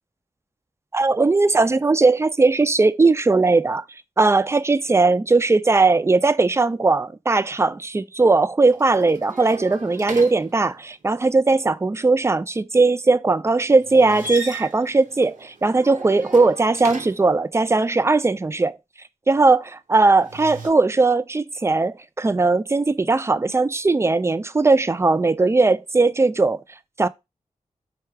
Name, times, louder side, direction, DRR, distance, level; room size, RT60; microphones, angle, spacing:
voice 1, 0.9-3.8 4.2-18.8 19.3-26.6 27.0-27.1, right 3 dB, 20° right, 0.3 m, -19 dB
sound 1, 8.7-11.0 13.8-17.4 20.0-20.7, right 2 dB, 75° right, 0.8 m, -37 dB
4.7 x 2.3 x 4.5 m
wide cardioid pair, 70°, 13 cm